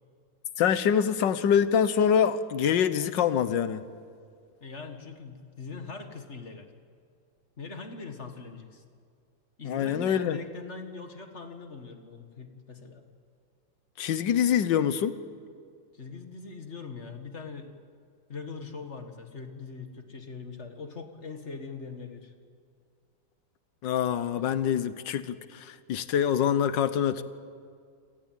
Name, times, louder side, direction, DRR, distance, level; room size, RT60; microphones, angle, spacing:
voice 1, 0.6-3.8 9.6-10.4 14.0-15.2 23.8-27.2, left 8 dB, 65° left, 13 dB, 1.6 m, -25 dB
voice 2, 4.6-6.7 7.6-8.8 9.6-13.1 15.9-17.7 18.3-22.3 24.4-24.5, left 4 dB, 35° left, 6 dB, 1.8 m, -41 dB
28.0 x 18.0 x 9.0 m, 2.2 s
omnidirectional pair, 2.2 m